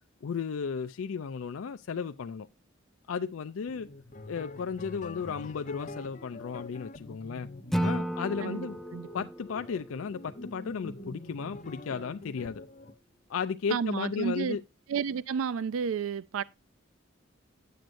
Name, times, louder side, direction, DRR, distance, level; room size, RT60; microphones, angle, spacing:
voice 1, 0.2-2.5 3.1-3.9 4.3-7.5 7.8-8.8 9.1-12.6 13.3-14.6, left 6 dB, 85° left, 0.4 m, -34 dB
sound 1, 3.7-12.9, left 2 dB, 40° left, 0.8 m, -45 dB
Acoustic guitar / Strum, 7.7-10.9, right 1 dB, ahead, 0.4 m, -34 dB
voice 2, 8.4-9.3 13.7-14.6 14.9-16.4, right 6 dB, 85° right, 0.4 m, -32 dB
10.0 x 7.8 x 2.5 m
head